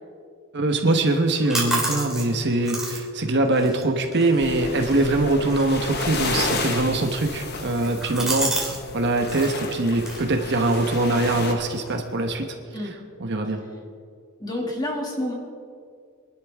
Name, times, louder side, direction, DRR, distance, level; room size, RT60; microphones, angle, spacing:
voice 1, 0.5-12.6 12.8-13.6, right 2 dB, 55° right, 4 dB, 1.1 m, -23 dB
sound 1, 1.1-8.8 9.1-9.6 10.0-12.3, right 2 dB, ahead, 2.7 m, -33 dB
sound 2, 4.4-11.5, left 3 dB, 50° left, 1.4 m, -32 dB
voice 2, 14.4-15.3, left 1 dB, 20° left, -1 dB, 2.3 m, -29 dB
23.0 x 11.5 x 3.6 m, 2.2 s
head